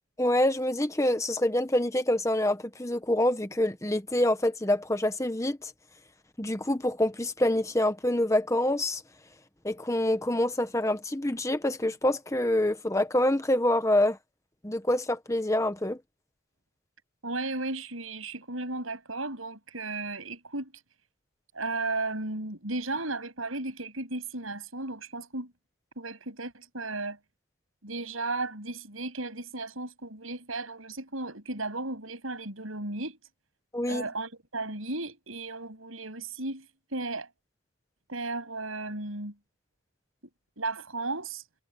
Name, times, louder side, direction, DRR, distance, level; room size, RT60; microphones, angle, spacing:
voice 1, 0.2-5.7 6.4-9.0 9.6-14.2 14.6-16.0 33.7-34.0, left 1 dB, 15° left, 1.1 m, -26 dB
voice 2, 17.2-20.7 21.5-25.5 26.0-27.2 27.8-33.2 33.9-37.3 38.1-39.3 40.6-41.4, right 2 dB, 80° right, 7.9 m, -35 dB
head